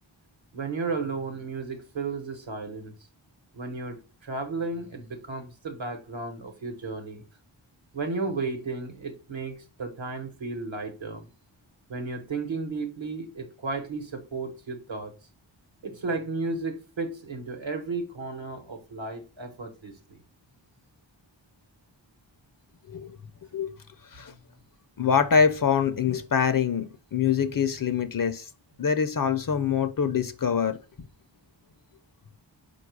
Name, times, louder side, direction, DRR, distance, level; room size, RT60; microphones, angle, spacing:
voice 1, 0.5-2.9 3.5-7.2 7.9-11.3 11.9-15.1 15.8-20.2, right 3 dB, 70° right, 1.0 m, -34 dB
voice 2, 25.0-28.5 28.8-31.1, left 6 dB, 50° left, 0.5 m, -25 dB
4.8 x 2.4 x 4.6 m
wide cardioid pair, 50°, 47 cm